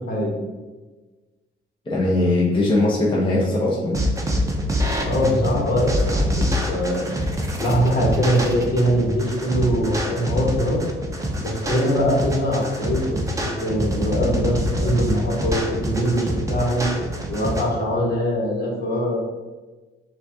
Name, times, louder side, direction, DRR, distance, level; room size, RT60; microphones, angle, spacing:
voice 1, 1.9-4.0, left 2 dB, 25° left, -5 dB, 0.9 m, -20 dB
sound 1, 3.9-17.6, equal, 15° right, 0.7 m, -25 dB
voice 2, 5.1-6.2 6.7-7.1 7.6-10.8 11.4-16.9 17.3-19.2, equal, 50° left, -3 dB, 1.3 m, -22 dB
6.4 x 2.5 x 2.9 m, 1.3 s
cardioid pair, 90°, 20 cm